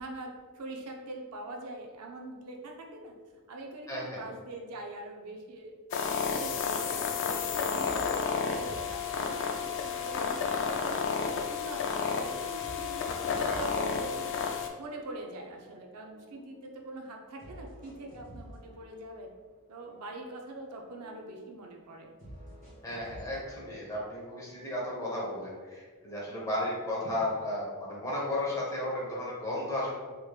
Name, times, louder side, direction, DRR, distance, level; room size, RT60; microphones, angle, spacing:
voice 1, 0.0-3.1 3.5-5.7 6.2-6.9 7.2-12.0 12.4-13.1 13.3-14.3 14.8-19.3 19.7-22.1, right 2 dB, 80° right, 1 dB, 0.5 m, -43 dB
voice 2, 3.9-4.2 22.8-29.9, left 1 dB, 15° left, -6 dB, 0.9 m, -34 dB
sound 1, 5.9-14.7, left 6 dB, 55° left, 0.3 m, -31 dB
sound 2, 7.8-9.8 10.2-12.0 12.6-14.6 15.0-16.8 17.4-19.5 19.8-21.6 22.2-24.2, equal, 35° right, 1.5 m, -51 dB
3.5 x 3.0 x 2.3 m, 1.5 s
head